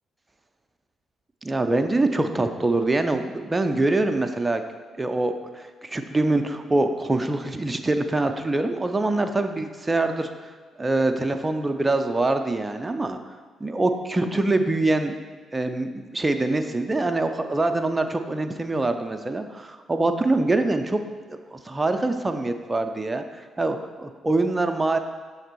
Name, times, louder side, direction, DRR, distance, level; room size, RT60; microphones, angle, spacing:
voice 1, 1.4-4.6 5.0-10.5 10.8-13.2 13.6-15.1 15.5-21.0 21.3-23.2 23.6-25.0, right 2 dB, 25° right, 7 dB, 0.5 m, -24 dB
6.5 x 3.4 x 4.5 m, 1.5 s
figure-of-eight pair, 40°, 0 cm